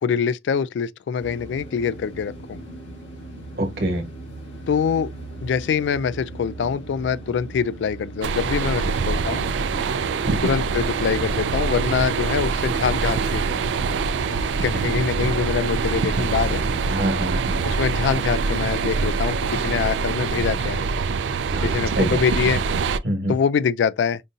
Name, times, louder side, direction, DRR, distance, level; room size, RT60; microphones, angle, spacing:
voice 1, 0.0-2.6 4.7-5.1 5.4-9.4 10.4-13.4 14.3-16.6 17.6-20.9 21.6-22.6 23.3-24.2, left 6 dB, 70° left, 0.3 m, -24 dB
sound 1, 1.2-20.8, right 1 dB, 90° left, 1.9 m, -39 dB
voice 2, 3.6-4.1 10.2-10.5 16.9-17.5 21.5-22.2 23.0-23.3, right 1 dB, 55° right, 1.2 m, -25 dB
sound 2, 8.2-23.0, right 5 dB, 70° right, 0.3 m, -24 dB
5.2 x 2.7 x 2.4 m
head